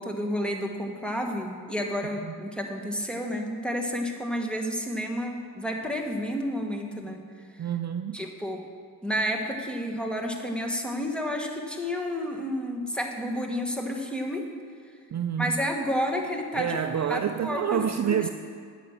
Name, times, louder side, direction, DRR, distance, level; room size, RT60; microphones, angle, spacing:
voice 1, 0.0-7.2 8.1-8.6 9.0-14.5 15.4-16.8 17.1-18.3, equal, 5° left, 2 dB, 1.4 m, -30 dB
voice 2, 7.6-8.2 15.1-15.6 16.5-18.3, right 8 dB, 45° right, 8 dB, 0.5 m, -28 dB
9.2 x 7.1 x 6.5 m, 2.2 s
cardioid pair, 80°, 39 cm